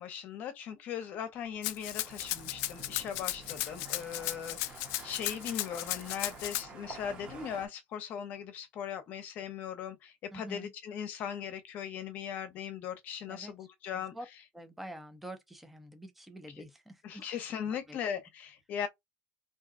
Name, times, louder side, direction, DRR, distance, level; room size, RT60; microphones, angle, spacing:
voice 1, 0.0-14.1 17.0-18.9, left 8 dB, 50° left, 0.8 m, -39 dB
sound 1, 1.4-7.7, right 3 dB, 30° right, 0.9 m, -49 dB
Rattle (instrument), 1.6-6.6, left 17 dB, 75° left, 0.3 m, -35 dB
voice 2, 10.3-10.7 13.3-13.5 13.9-14.3 14.5-17.3 17.7-18.0, right 1 dB, 5° right, 0.5 m, -47 dB
2.7 x 2.3 x 3.6 m
cardioid pair, 155°, 4 cm